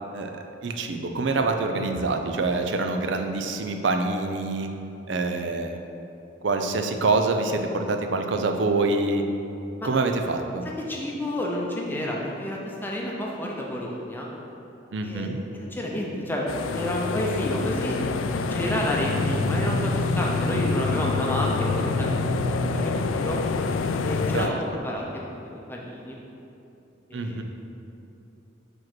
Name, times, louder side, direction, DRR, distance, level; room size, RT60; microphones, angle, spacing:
voice 1, 0.1-4.7 5.1-5.8 6.4-9.2 9.8-10.6 14.9-15.4 24.3-24.5 27.1-27.4, right 3 dB, 70° right, 5 dB, 0.5 m, -26 dB
voice 2, 10.9-14.3 15.0-18.0 18.5-22.1 22.5-23.4 24.0-26.2 27.1-27.4, left 1 dB, 10° left, -3 dB, 0.7 m, -30 dB
sound 1, 16.5-24.5, left 3 dB, 85° left, 0.4 m, -26 dB
5.0 x 4.5 x 6.0 m, 2.8 s
head